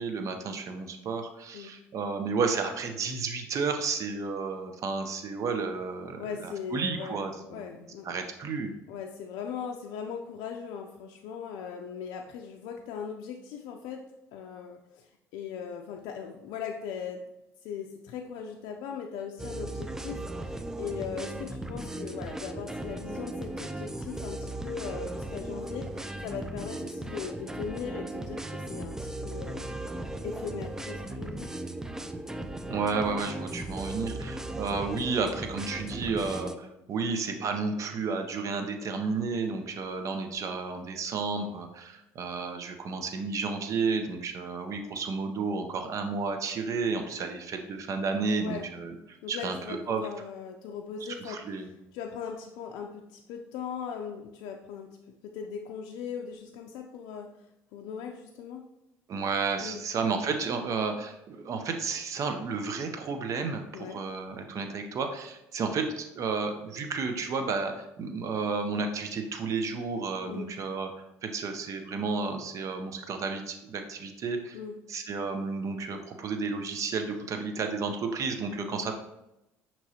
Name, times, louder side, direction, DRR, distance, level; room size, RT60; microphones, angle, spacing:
voice 1, 0.0-7.8 8.0-8.7 32.7-50.0 51.2-51.7 59.1-70.9 71.2-74.6 74.9-78.9, right 4 dB, 50° right, 6 dB, 0.7 m, -32 dB
voice 2, 6.2-8.2 8.9-14.0 14.3-17.2 17.6-29.6 30.2-31.5 48.4-48.6 49.2-51.4 51.9-55.0 55.2-58.7 59.6-59.8 63.7-64.0 70.3-70.6 74.5-74.8 78.6-78.9, left 7 dB, 75° left, 2 dB, 0.4 m, -39 dB
sound 1, 19.4-36.6, right 1 dB, 10° right, 0.3 m, -37 dB
5.8 x 3.0 x 2.8 m, 0.90 s
supercardioid pair, 75°, 7 cm